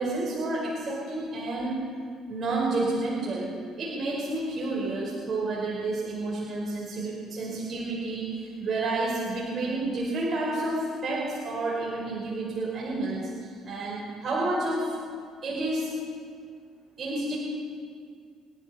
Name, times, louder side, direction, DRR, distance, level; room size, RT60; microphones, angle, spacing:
voice 1, 0.0-1.8 2.3-14.9 15.4-15.9 17.0-17.4, right 2 dB, 45° right, -5 dB, 4.1 m, -30 dB
28.5 x 11.0 x 4.1 m, 2.1 s
cardioid pair, 105°, 0 cm